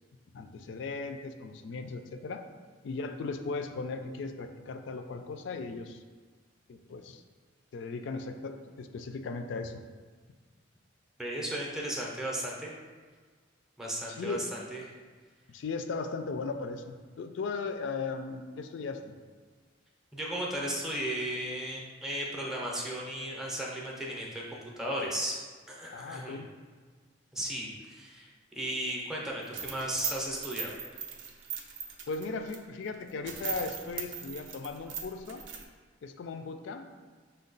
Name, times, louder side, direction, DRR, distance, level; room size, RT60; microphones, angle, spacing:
voice 1, 0.3-2.4 2.8-6.0 6.7-7.2 7.7-9.8 14.1-14.5 15.5-19.0 25.9-26.5 32.1-35.5 36.0-36.9, left 4 dB, 75° left, 7 dB, 0.3 m, -37 dB
voice 2, 11.2-12.7 13.8-14.8 20.1-25.4 25.7-26.4 27.3-30.7, right 1 dB, 5° right, -3 dB, 0.5 m, -35 dB
sound 1, 29.4-32.6 32.9-33.0 33.2-35.6, right 7 dB, 75° right, 0.5 m, -39 dB
5.3 x 2.2 x 3.9 m, 1.5 s
head